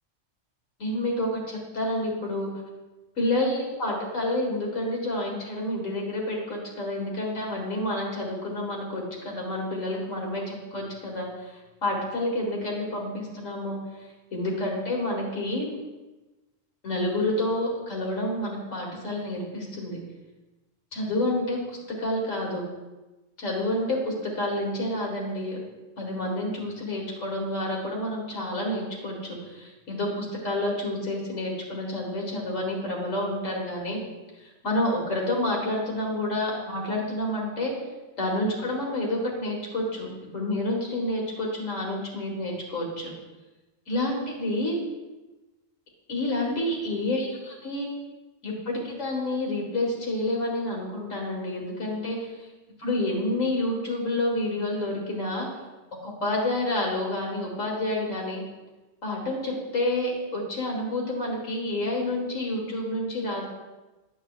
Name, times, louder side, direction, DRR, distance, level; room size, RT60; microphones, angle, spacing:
voice 1, 0.8-2.5 3.2-13.8 14.3-15.7 16.8-20.0 20.9-22.6 23.4-25.6 26.0-34.0 34.4-37.7 38.2-43.1 43.9-44.8 46.1-47.9 48.4-52.5 52.8-55.6 56.0-58.4 59.0-63.4, left 1 dB, 85° left, -2 dB, 2.1 m, -29 dB
10.0 x 8.1 x 2.4 m, 1.1 s
omnidirectional pair, 1.3 m